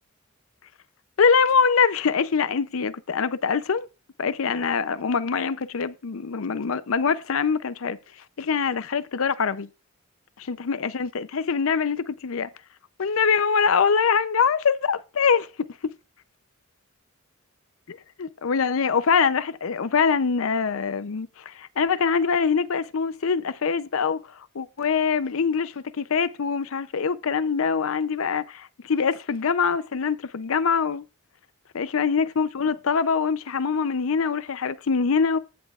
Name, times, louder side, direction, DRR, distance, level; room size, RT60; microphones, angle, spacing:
voice 1, 1.2-3.9 4.2-8.0 8.4-9.7 10.4-12.5 13.0-15.9 17.9-31.0 31.7-35.4, left 5 dB, 75° left, 0.6 m, -24 dB
15.5 x 6.8 x 2.4 m
head